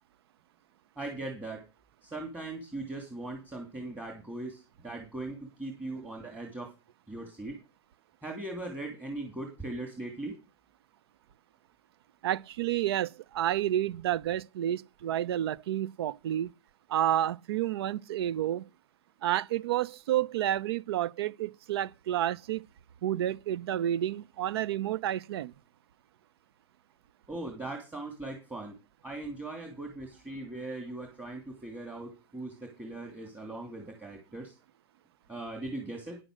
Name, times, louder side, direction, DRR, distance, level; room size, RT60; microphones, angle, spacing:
voice 1, 1.0-1.6 2.0-6.7 7.1-7.6 8.2-10.3 27.3-28.8 29.0-34.5 35.3-36.2, right 2 dB, 10° right, 2.8 m, -39 dB
voice 2, 12.2-16.5 16.9-18.6 19.2-22.6 23.0-25.5, right 12 dB, 70° right, 0.6 m, -30 dB
10.0 x 7.7 x 6.3 m
hypercardioid pair, 135°, 14 cm